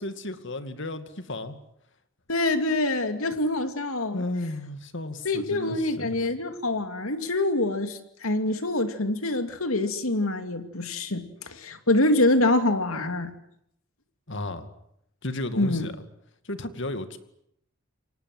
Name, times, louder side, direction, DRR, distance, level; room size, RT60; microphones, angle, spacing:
voice 1, 0.0-1.6 4.1-6.1 14.3-14.7 15.2-15.9 16.4-17.2, left 2 dB, 55° left, 2.4 m, -33 dB
voice 2, 2.3-4.2 5.2-13.3 15.6-15.9, left 2 dB, 80° left, 2.7 m, -25 dB
28.5 x 24.0 x 8.0 m
head